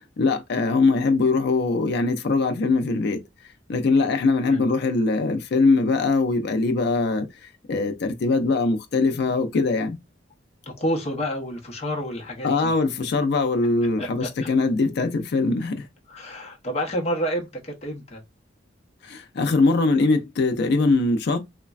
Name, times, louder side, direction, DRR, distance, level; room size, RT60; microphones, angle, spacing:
voice 1, 0.2-3.2 3.7-7.3 7.7-10.0 12.4-15.9 19.0-21.4, left 3 dB, 60° left, 0.4 m, -22 dB
voice 2, 10.7-12.7 14.0-14.5 16.1-18.2, equal, 35° left, 0.7 m, -29 dB
3.1 x 2.1 x 2.3 m
head